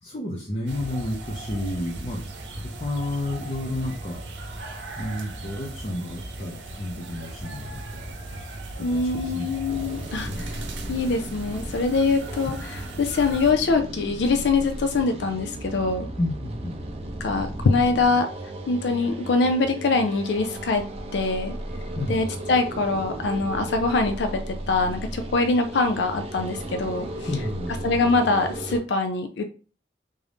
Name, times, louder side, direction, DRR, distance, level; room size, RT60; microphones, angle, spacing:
voice 1, 0.0-2.2 2.6-8.1 8.9-9.5 10.2-10.5 16.2-16.8 21.9-22.3 27.3-27.8, left 1 dB, 35° left, -3 dB, 0.6 m, -31 dB
sound 1, 0.7-13.5, right 2 dB, 80° right, 0.7 m, -37 dB
voice 2, 8.8-10.5 10.9-16.1 17.2-18.3 18.7-20.8 21.1-21.5 22.1-27.1 27.8-29.5, left 3 dB, 70° left, 6 dB, 0.4 m, -23 dB
sound 2, 9.7-28.8, right 1 dB, 35° right, 0.5 m, -35 dB
3.7 x 2.6 x 3.4 m, 0.38 s
head